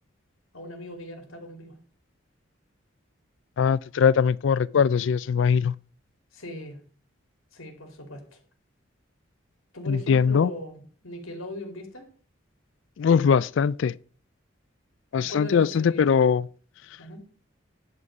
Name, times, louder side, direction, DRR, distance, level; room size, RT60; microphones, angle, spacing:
voice 1, 0.5-1.7 6.3-6.8 7.5-8.4 9.7-12.1 15.2-16.2 17.0-17.2, equal, 90° left, 2.7 m, -39 dB
voice 2, 3.6-5.7 9.9-10.5 13.0-13.9 15.1-16.5, left 6 dB, 65° left, 0.3 m, -21 dB
11.0 x 4.1 x 7.2 m
head